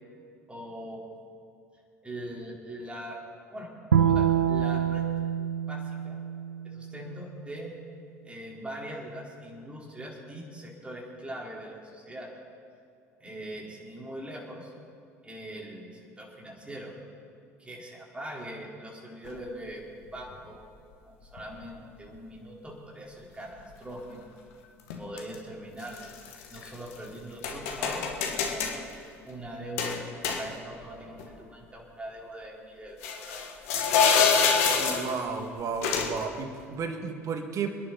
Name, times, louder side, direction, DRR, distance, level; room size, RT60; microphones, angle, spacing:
voice 1, 0.5-1.0 2.0-3.2 3.5-3.7 4.0-5.0 5.7-6.2 6.6-7.7 8.2-12.3 13.2-14.7 15.2-16.9 17.6-20.6 21.0-24.2 25.0-26.0 26.5-28.9 29.2-33.6, right 1 dB, 15° right, -2 dB, 4.0 m, -41 dB
Bowed string instrument, 3.9-7.2, right 9 dB, 80° right, 0.7 m, -26 dB
sound 1, 19.2-19.3 20.3-20.4 21.4-21.6 24.9-25.4 25.8-27.0 27.4-28.8 29.8-30.8 31.2-31.3 33.0-35.2 35.8-36.3, left 6 dB, 65° left, 1.7 m, -26 dB
voice 2, 34.8-37.7, right 5 dB, 40° right, 5 dB, 2.0 m, -33 dB
27.5 x 10.5 x 4.1 m, 2.4 s
figure-of-eight pair, 65°, 8 cm